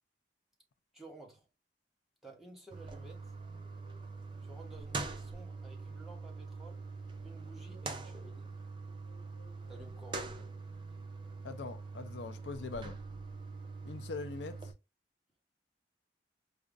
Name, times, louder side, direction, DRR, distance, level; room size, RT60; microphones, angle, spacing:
voice 1, 0.9-1.5 2.2-3.3 4.4-6.8 7.2-8.5 9.7-10.5, right 2 dB, ahead, 1.0 m, -54 dB
sound 1, 2.7-14.7, right 3 dB, 25° right, 0.5 m, -44 dB
sound 2, 3.2-10.4, left 1 dB, 90° right, 1.0 m, -65 dB
voice 2, 11.4-13.0 13.8-14.7, left 4 dB, 80° left, 0.4 m, -42 dB
4.8 x 2.2 x 2.5 m
head